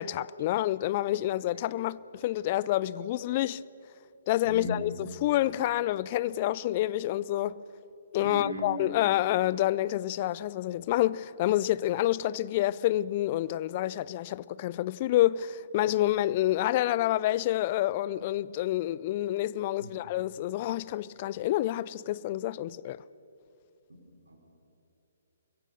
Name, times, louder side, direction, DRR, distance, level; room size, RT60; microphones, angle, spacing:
voice 1, 0.0-3.6 4.3-7.6 8.1-23.0, left 14 dB, 35° left, 0.4 m, -28 dB
voice 2, 4.4-4.8 8.2-8.6 19.8-20.0 23.9-24.0 24.3-24.4, equal, 80° right, 4.4 m, -37 dB
25.0 x 22.0 x 6.7 m
figure-of-eight pair, 130°, 0 cm